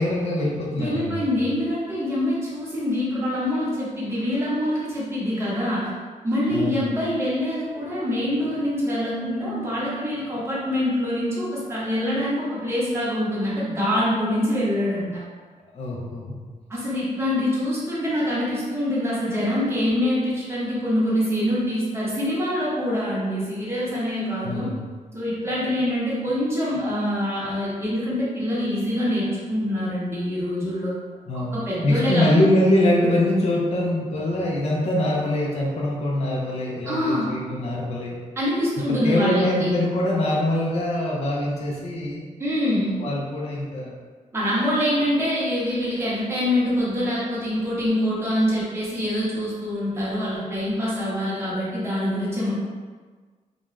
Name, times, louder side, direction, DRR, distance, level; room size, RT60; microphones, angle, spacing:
voice 1, 0.0-1.1 6.5-6.9 15.7-16.4 24.4-24.8 31.3-31.5 31.8-38.1 38.9-42.2 43.0-44.0, left 1 dB, 50° left, -4 dB, 0.5 m, -23 dB
voice 2, 0.8-5.9 6.2-15.1 16.7-24.7 25.1-31.0 31.3-32.4 36.8-37.3 38.4-39.7 42.4-43.0 44.3-52.5, left 1 dB, 20° right, -8 dB, 0.8 m, -25 dB
2.4 x 2.2 x 3.0 m, 1.5 s
wide cardioid pair, 170°, 14 cm